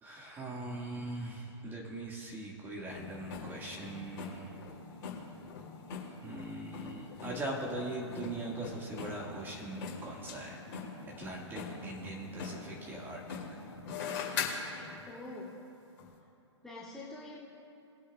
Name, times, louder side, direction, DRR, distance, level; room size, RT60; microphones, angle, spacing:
voice 1, 0.0-4.5 6.2-10.6 11.1-13.2, right 2 dB, 15° right, -2 dB, 1.9 m, -41 dB
sound 1, 2.9-15.1 16.0-16.1, left 5 dB, 40° left, 2.8 m, -42 dB
voice 2, 15.1-15.6 16.6-17.4, left 2 dB, 5° left, -7 dB, 1.4 m, -45 dB
22.5 x 8.4 x 2.4 m, 2.7 s
figure-of-eight pair, 125°, 15 cm